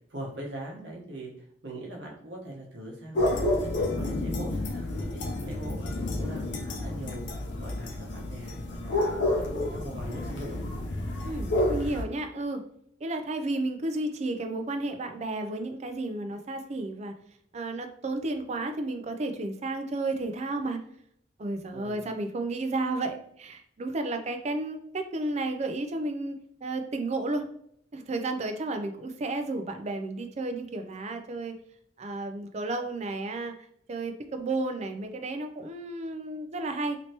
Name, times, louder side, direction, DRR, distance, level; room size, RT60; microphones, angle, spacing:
voice 1, 0.1-1.3 1.6-3.3 3.6-5.8 6.2-9.0 9.4-10.6 21.7-22.0, right 1 dB, 80° right, -2 dB, 1.1 m, -41 dB
sound 1, 3.1-12.0, left 1 dB, 70° left, 0.6 m, -30 dB
voice 2, 11.2-12.6 13.0-17.1 17.5-20.8 21.4-27.5 27.9-31.6 32.0-33.5 33.9-37.0, right 2 dB, 40° right, 6 dB, 0.4 m, -32 dB
3.2 x 2.9 x 2.8 m, 0.68 s
head